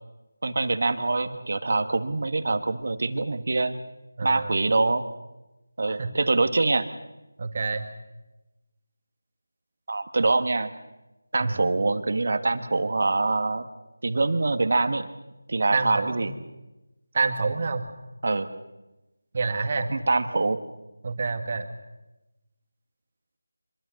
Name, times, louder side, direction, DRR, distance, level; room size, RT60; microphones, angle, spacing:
voice 1, 0.4-3.8 4.2-5.1 5.8-6.9 9.9-10.7 11.3-13.7 14.0-15.1 15.5-16.3 18.2-18.5 19.9-20.6, right 3 dB, 55° right, 9 dB, 1.7 m, -24 dB
voice 2, 4.2-4.5 5.9-6.1 7.4-7.9 11.4-11.6 15.7-16.3 17.1-17.9 19.3-19.9 21.0-21.7, right 4 dB, 35° right, 7 dB, 2.0 m, -27 dB
25.0 x 23.0 x 6.5 m, 1.0 s
figure-of-eight pair, 170°, 0 cm